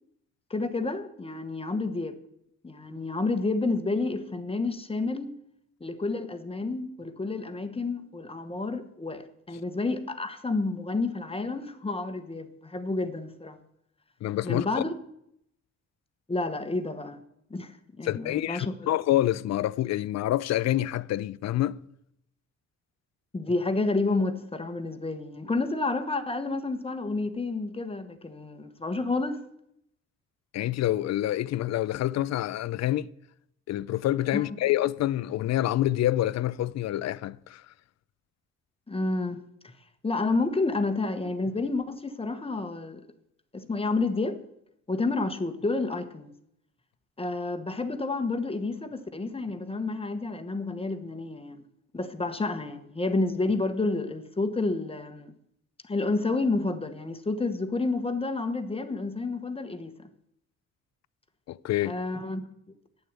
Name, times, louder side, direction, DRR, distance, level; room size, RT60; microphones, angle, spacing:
voice 1, 0.5-2.2 2.6-5.3 5.8-13.6 14.4-14.9 16.3-17.2 17.5-18.9 23.3-29.4 34.3-34.5 38.9-39.7 40.0-43.0 43.5-44.4 44.9-46.3 47.2-51.6 51.9-55.3 55.8-60.1 61.8-62.8, left 3 dB, 20° left, 1.2 m, -30 dB
voice 2, 14.2-14.7 18.0-21.8 30.5-33.1 33.7-37.6 61.5-62.0, left 14 dB, 60° left, 0.5 m, -27 dB
9.3 x 8.6 x 8.1 m
cardioid pair, 90°, 30 cm